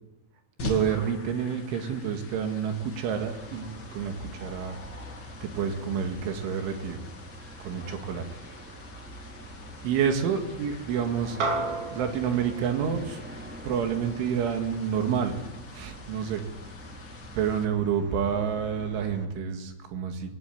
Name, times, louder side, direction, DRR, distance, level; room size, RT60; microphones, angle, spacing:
sound 1, 0.6-17.6, left 4 dB, 40° left, 1.9 m, -45 dB
voice 1, 0.6-4.8 5.4-7.0 7.6-8.2 9.8-13.2 13.6-15.4 15.7-16.4 17.4-20.4, right 7 dB, 75° right, 6 dB, 4.4 m, -29 dB
sound 2, 3.1-19.2, equal, 5° right, 1.4 m, -45 dB
sound 3, 11.4-16.0, right 3 dB, 40° right, 3.9 m, -35 dB
20.0 x 17.5 x 9.5 m, 0.94 s
omnidirectional pair, 5.6 m